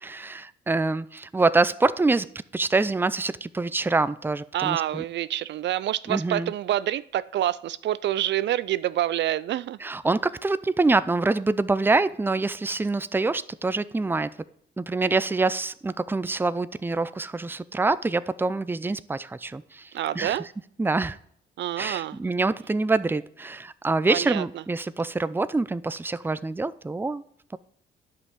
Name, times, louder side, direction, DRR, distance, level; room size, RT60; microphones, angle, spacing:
voice 1, 0.0-5.0 6.1-6.5 9.8-14.3 14.8-20.4 20.8-21.2 21.8-27.2, right 3 dB, 10° right, 0.5 m, -25 dB
voice 2, 4.5-9.8 19.9-20.5 21.6-22.2 24.1-24.6, right 12 dB, 65° right, 0.4 m, -27 dB
10.0 x 5.6 x 8.1 m
cardioid pair, 90°, 20 cm